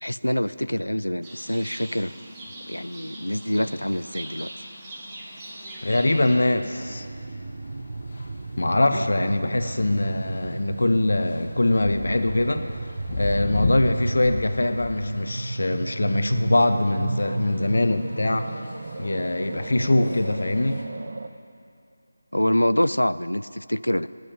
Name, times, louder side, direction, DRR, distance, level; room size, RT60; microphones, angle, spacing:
voice 1, 0.0-2.1 2.7-4.7 8.9-9.0 22.3-24.1, left 1 dB, 90° left, 16 dB, 0.3 m, -25 dB
Livestock farm animals working animals, 1.2-6.4, right 1 dB, 15° right, 1.6 m, -40 dB
sound 1, 5.2-20.8, left 2 dB, 50° left, 1.7 m, -38 dB
voice 2, 5.8-7.1 8.6-12.6 13.2-18.5 19.0-20.8, left 1 dB, 65° left, 9 dB, 0.8 m, -23 dB
sound 2, 6.8-21.3, right 2 dB, 50° right, 0.7 m, -34 dB
9.9 x 9.5 x 9.2 m, 2.4 s
figure-of-eight pair, 160°, 0 cm